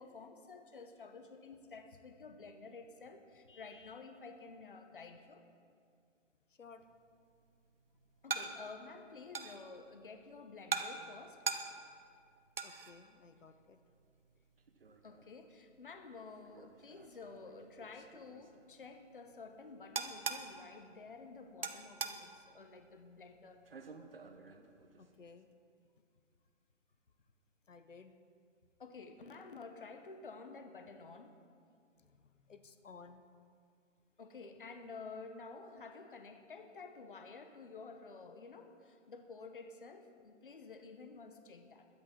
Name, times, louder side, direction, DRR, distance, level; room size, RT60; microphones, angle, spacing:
voice 1, 0.0-5.4 8.2-11.4 15.0-23.6 28.8-31.4 34.2-41.9, left 4 dB, 45° left, 7 dB, 0.9 m, -51 dB
sound 1, 6.8-25.3, right 5 dB, 50° right, 1.0 m, -46 dB
voice 2, 12.6-13.8 25.0-25.5 27.7-28.1 32.0-33.2, left 5 dB, 80° left, 10 dB, 1.0 m, -57 dB
21.5 x 8.1 x 4.4 m, 2.3 s
hypercardioid pair, 175°, 37 cm